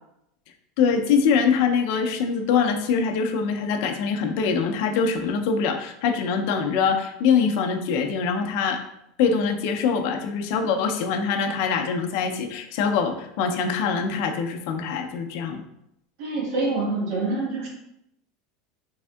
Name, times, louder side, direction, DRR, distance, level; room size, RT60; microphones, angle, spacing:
voice 1, 0.8-8.8 9.2-15.6, left 6 dB, 55° left, 5 dB, 0.4 m, -23 dB
voice 2, 16.2-17.7, right 3 dB, 60° right, -3 dB, 1.3 m, -26 dB
3.5 x 3.4 x 2.2 m, 0.79 s
supercardioid pair, 165°, 0 cm